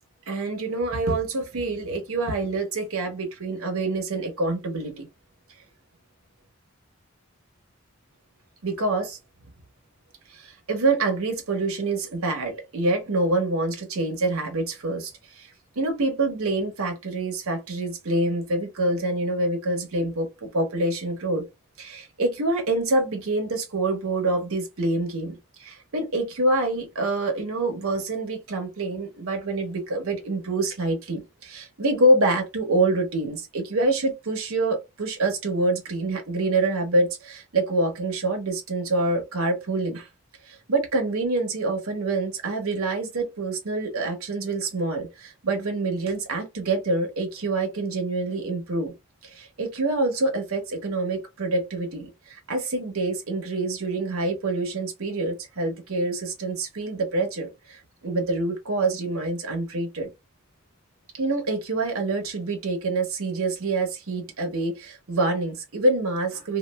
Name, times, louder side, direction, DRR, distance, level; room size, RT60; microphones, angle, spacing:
voice 1, 0.3-5.1 8.6-9.2 10.3-21.5 21.8-40.1 40.5-48.9 49.2-60.1 61.1-66.6, right 2 dB, 80° right, 1.0 m, -26 dB
3.1 x 2.4 x 2.3 m
head